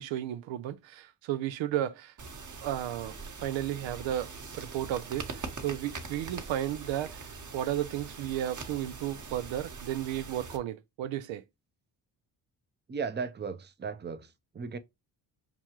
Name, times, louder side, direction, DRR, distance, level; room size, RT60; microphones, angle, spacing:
voice 1, 0.0-2.1 2.6-3.1 3.4-4.3 4.5-7.3 7.5-11.4, right 12 dB, 75° right, 0.5 m, -33 dB
sound 1, 2.2-10.6, right 4 dB, 40° right, 1.1 m, -43 dB
voice 2, 12.9-14.3 14.5-14.8, right 5 dB, 25° right, 0.6 m, -35 dB
5.9 x 2.3 x 3.0 m
supercardioid pair, 50°, 47 cm